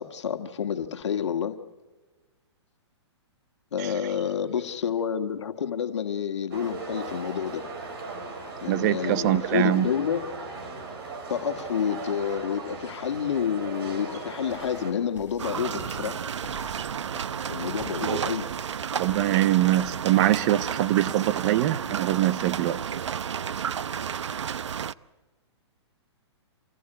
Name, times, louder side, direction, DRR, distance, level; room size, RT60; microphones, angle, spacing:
voice 1, 0.0-1.6 3.7-7.7 8.6-10.2 11.3-16.2 17.5-18.5, left 8 dB, 75° left, 6 dB, 1.7 m, -29 dB
sound 1, 6.5-14.9, right 3 dB, 55° right, 6.5 m, -38 dB
voice 2, 8.7-9.9 19.0-22.8, right 14 dB, 40° right, 15 dB, 0.8 m, -23 dB
sound 2, 14.5-19.9, equal, 15° right, 7.4 m, -48 dB
sound 3, 15.4-24.9, right 8 dB, 85° right, 0.7 m, -32 dB
27.5 x 19.0 x 8.0 m, 1.3 s
hypercardioid pair, 145°, 15 cm